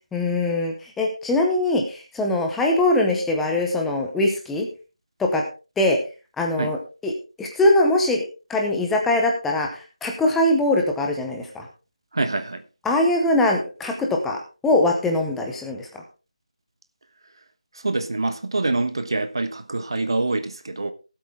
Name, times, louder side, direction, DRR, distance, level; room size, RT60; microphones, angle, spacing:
voice 1, 0.1-4.7 5.2-5.4 5.8-6.0 6.4-6.8 7.0-7.1 7.4-8.2 8.5-11.7 12.8-16.0, left 1 dB, ahead, 0.7 m, -22 dB
voice 2, 12.1-12.6 17.8-20.9, right 2 dB, 45° right, 1.2 m, -25 dB
18.0 x 8.0 x 3.5 m
figure-of-eight pair, 175°, 4 cm